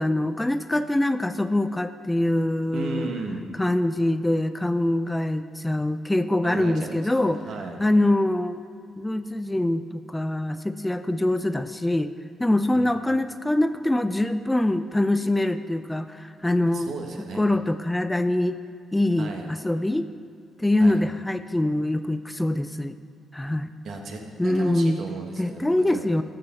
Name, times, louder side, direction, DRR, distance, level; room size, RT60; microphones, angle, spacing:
voice 1, 0.0-3.1 3.6-7.4 7.8-8.6 9.0-12.1 12.4-16.9 17.4-18.5 18.9-20.1 20.6-23.0 23.3-23.7 24.4-25.0 25.4-26.2, left 1 dB, 10° left, 11 dB, 0.3 m, -24 dB
voice 2, 2.7-3.5 6.4-7.8 12.7-12.9 16.7-17.4 19.2-19.5 20.8-21.0 23.8-26.1, right 3 dB, 65° right, 3 dB, 1.2 m, -35 dB
13.0 x 6.5 x 4.3 m, 2.2 s
cardioid pair, 90°, 0 cm